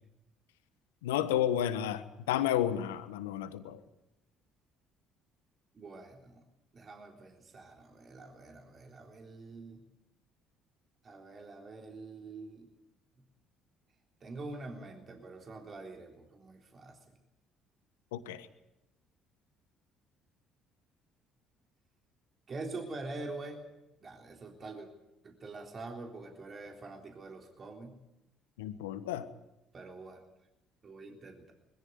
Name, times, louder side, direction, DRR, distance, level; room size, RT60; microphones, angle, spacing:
voice 1, 1.0-3.8 18.1-18.5 28.6-29.3, left 11 dB, 85° left, 12 dB, 1.3 m, -31 dB
voice 2, 5.7-6.4 6.7-9.9 11.0-12.7 14.2-17.0 22.5-23.6 24.0-24.9 25.2-28.0 29.7-30.2 30.8-31.5, right 3 dB, 45° right, 2 dB, 3.7 m, -45 dB
21.5 x 15.0 x 9.8 m, 0.93 s
hypercardioid pair, 55°, 0 cm